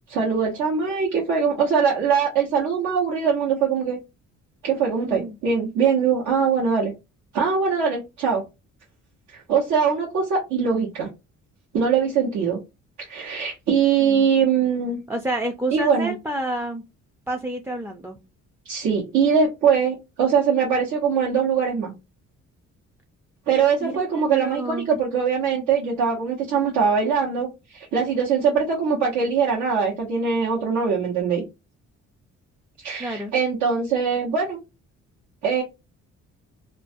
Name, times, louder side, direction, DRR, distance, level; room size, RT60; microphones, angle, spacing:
voice 1, 0.1-4.0 4.6-6.9 7.3-8.4 9.3-11.1 11.7-12.6 13.0-15.0 15.7-16.1 18.6-21.9 23.5-31.4 32.8-34.6 35.4-35.6, right 6 dB, 80° right, -5 dB, 1.0 m, -22 dB
voice 2, 5.0-5.4 14.0-14.2 15.1-16.8 17.3-18.2 23.8-24.9 33.0-33.3, right 1 dB, 10° right, 5 dB, 0.3 m, -29 dB
2.4 x 2.2 x 2.5 m, 0.25 s
cardioid pair, 90°, 30 cm